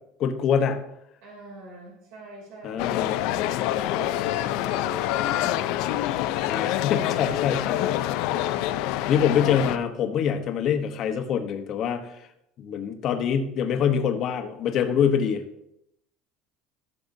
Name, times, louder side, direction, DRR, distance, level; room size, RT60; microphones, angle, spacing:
voice 1, 0.2-0.8 2.6-3.2 6.5-7.8 9.1-12.1 12.6-15.4, left 7 dB, 40° left, 7 dB, 1.0 m, -25 dB
voice 2, 1.2-3.4 3.9-5.9 7.6-7.9, right 2 dB, 80° right, -1 dB, 2.8 m, -45 dB
sound 1, 2.8-9.8, left 13 dB, 65° left, 0.5 m, -26 dB
14.5 x 6.6 x 2.7 m, 0.80 s
cardioid pair, 155°, 0 cm